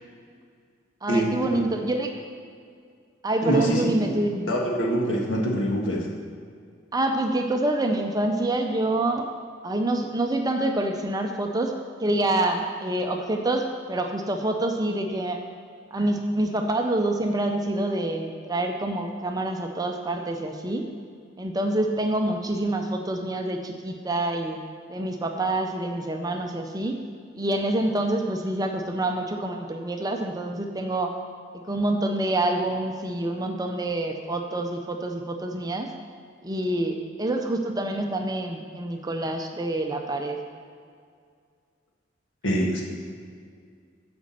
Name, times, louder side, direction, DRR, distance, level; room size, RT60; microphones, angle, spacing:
voice 1, 1.0-2.1 3.2-4.5 6.9-9.3 9.6-15.4 15.9-20.8 21.4-24.6 24.9-27.0 27.3-31.1 31.7-35.9 36.4-40.4, right 1 dB, 20° right, 3 dB, 0.6 m, -26 dB
voice 2, 3.4-4.2 4.5-6.1 42.4-42.8, right 1 dB, 65° left, -2 dB, 1.6 m, -24 dB
8.1 x 5.2 x 7.4 m, 2.2 s
head